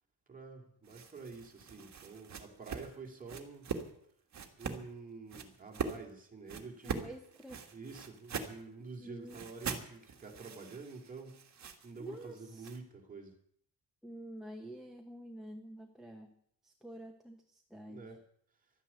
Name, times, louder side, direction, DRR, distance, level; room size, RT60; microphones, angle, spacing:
voice 1, 0.3-3.7 4.6-7.1 7.7-11.4 11.8-13.3 17.9-18.2, right 4 dB, 20° right, 1 dB, 2.7 m, -48 dB
sound 1, 0.8-3.9 4.3-4.8 5.3-6.0 6.5-8.6 9.3-12.8, right 6 dB, 40° right, 1.7 m, -42 dB
voice 2, 6.8-7.6 9.0-9.4 12.0-12.7 14.0-16.3 16.6-18.1, right 1 dB, ahead, 4 dB, 1.1 m, -48 dB
12.5 x 9.9 x 8.4 m, 0.67 s
cardioid pair, 155°, 43 cm